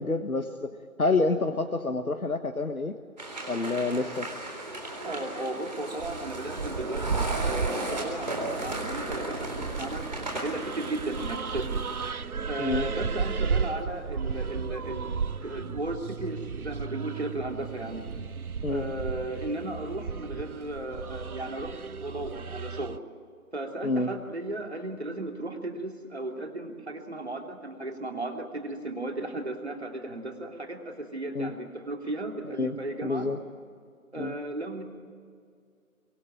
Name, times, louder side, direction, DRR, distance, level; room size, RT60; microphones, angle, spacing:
voice 1, 0.0-3.0 3.5-4.3 12.6-12.9 18.6-18.9 23.8-24.1 31.3-31.5 32.4-32.8 33.0-33.4 34.2-34.3, left 3 dB, 75° left, 7 dB, 1.5 m, -28 dB
sound 1, 3.2-12.1, right 1 dB, 30° right, 3.8 m, -35 dB
voice 2, 5.0-9.5 9.8-11.8 12.4-15.1 15.4-18.0 18.7-23.0 23.5-33.3 34.1-34.8, right 2 dB, 50° right, 3 dB, 3.1 m, -35 dB
sound 2, 6.0-23.0, right 5 dB, 85° right, 0.8 m, -34 dB
24.5 x 22.0 x 9.0 m, 2.2 s
figure-of-eight pair, 170°, 43 cm